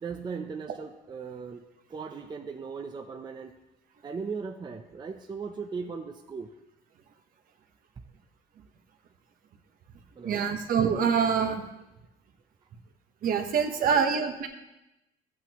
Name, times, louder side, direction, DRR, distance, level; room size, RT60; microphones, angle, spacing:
voice 1, 0.0-3.5 4.0-6.5 10.2-10.5 13.8-14.1, right 5 dB, 25° right, 3 dB, 0.6 m, -38 dB
voice 2, 10.2-11.6 13.2-14.5, right 6 dB, 55° right, 5 dB, 1.2 m, -25 dB
13.5 x 8.6 x 3.0 m, 0.96 s
cardioid pair, 110°, 17 cm